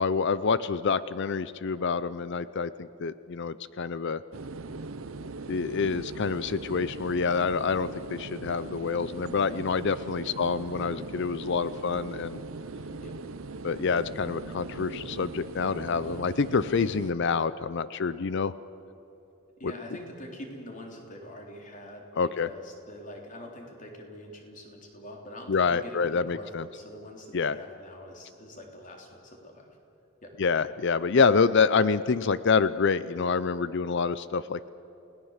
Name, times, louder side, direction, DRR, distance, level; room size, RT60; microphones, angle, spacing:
voice 1, 0.0-4.2 5.5-12.4 13.6-18.5 19.6-19.7 22.2-22.5 25.5-26.7 27.3-27.6 30.4-34.7, left 5 dB, 55° left, 15 dB, 0.5 m, -27 dB
sound 1, 4.3-17.1, right 3 dB, 75° right, 0.8 m, -40 dB
voice 2, 19.6-29.8 30.2-30.3, left 1 dB, 40° left, 1 dB, 3.5 m, -45 dB
29.0 x 18.5 x 7.4 m, 2.9 s
head